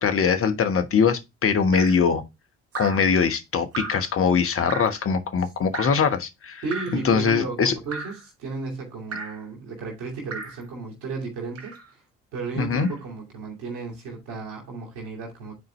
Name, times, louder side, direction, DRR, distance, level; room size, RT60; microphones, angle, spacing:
voice 1, 0.0-2.2 2.7-6.6 7.0-7.7 12.6-12.9, left 6 dB, 40° left, 1.2 m, -22 dB
Drip, 1.7-2.1 2.7-3.1 3.7-4.1 4.7-5.0 5.7-6.1 6.7-7.1 7.9-8.3 9.1-9.4 10.3-10.6 11.6-11.9 12.8-13.0, right 4 dB, 40° right, 1.8 m, -35 dB
voice 2, 6.6-12.0 12.3-15.5, right 4 dB, 70° right, 2.5 m, -34 dB
9.6 x 4.4 x 3.1 m
figure-of-eight pair, 50°, 35 cm